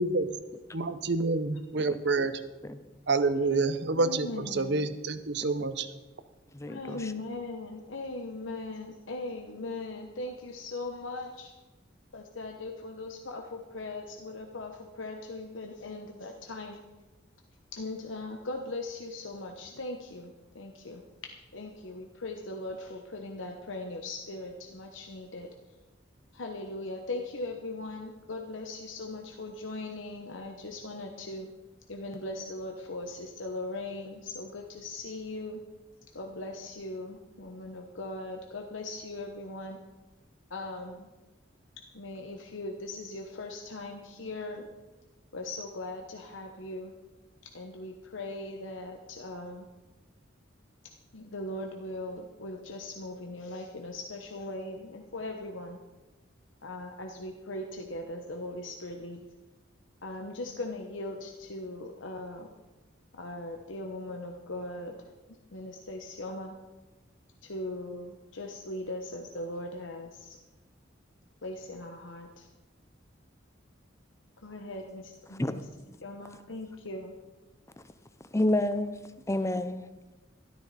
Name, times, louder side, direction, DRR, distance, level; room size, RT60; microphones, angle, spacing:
voice 1, 0.7-2.4 3.1-5.9, right 3 dB, 60° right, 12 dB, 0.8 m, -28 dB
voice 2, 3.9-4.9 6.7-11.5 12.1-16.8 17.7-21.0 21.5-25.5 26.3-31.5 31.9-35.6 36.1-39.8 40.5-41.1 41.9-44.7 45.3-46.9 47.5-49.7 51.1-55.8 56.6-59.2 60.0-62.5 63.1-65.0 65.5-66.6 67.4-70.4 71.4-72.5 74.4-75.6 76.0-77.1, left 2 dB, 85° left, 3 dB, 1.1 m, -39 dB
voice 3, 6.5-7.1 75.3-75.5 75.9-76.0 78.3-79.0 79.3-79.8, left 1 dB, 15° left, 11 dB, 0.6 m, -29 dB
13.0 x 12.5 x 4.2 m, 1.1 s
head